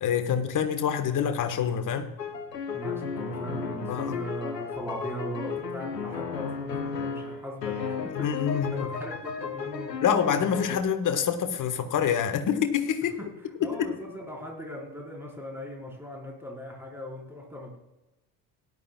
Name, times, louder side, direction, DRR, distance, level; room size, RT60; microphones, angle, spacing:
voice 1, 0.0-2.1 3.9-4.2 8.1-8.9 10.0-13.2 13.6-13.9, left 8 dB, 40° left, 8 dB, 1.5 m, -26 dB
sound 1, 2.2-10.8, left 6 dB, 90° left, 0.9 m, -34 dB
voice 2, 2.7-9.9 13.6-17.8, equal, 5° right, -2 dB, 4.6 m, -39 dB
17.5 x 11.0 x 2.3 m, 1.0 s
figure-of-eight pair, 60°, 48 cm